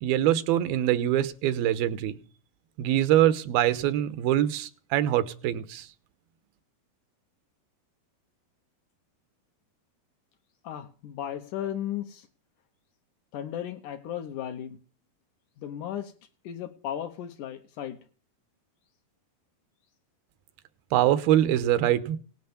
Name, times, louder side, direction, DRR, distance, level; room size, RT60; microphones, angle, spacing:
voice 1, 0.0-2.2 2.8-5.9 20.9-22.2, right 12 dB, 80° right, 14 dB, 2.8 m, -24 dB
voice 2, 10.6-12.3 13.3-14.8 15.6-16.1 16.4-18.0, left 10 dB, 70° left, 8 dB, 2.2 m, -35 dB
18.0 x 9.4 x 7.0 m, 0.41 s
omnidirectional pair, 4.3 m